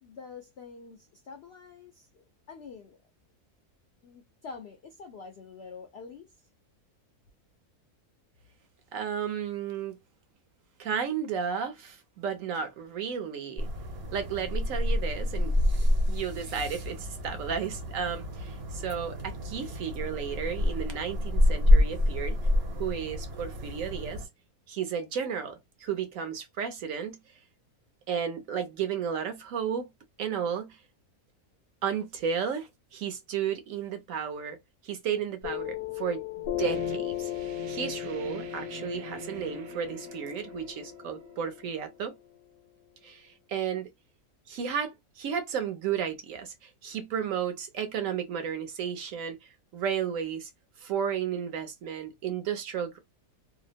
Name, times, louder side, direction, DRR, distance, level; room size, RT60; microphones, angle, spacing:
voice 1, 0.0-3.0 4.0-6.4, left 5 dB, 70° left, 0.6 m, -46 dB
voice 2, 8.9-10.0 10.8-13.7 14.1-15.6 16.1-22.4 22.8-24.2 24.7-27.2 28.1-29.9 30.2-30.8 31.8-42.1 43.0-43.9 44.5-50.5 50.8-53.0, right 7 dB, 65° right, 1.0 m, -33 dB
sound 1, 13.6-24.2, left 1 dB, 45° right, 1.1 m, -27 dB
Piano, 35.4-42.5, left 13 dB, 90° left, 1.1 m, -36 dB
sound 2, 36.6-42.0, right 12 dB, 85° right, 1.1 m, -47 dB
2.8 x 2.0 x 2.5 m
omnidirectional pair, 1.6 m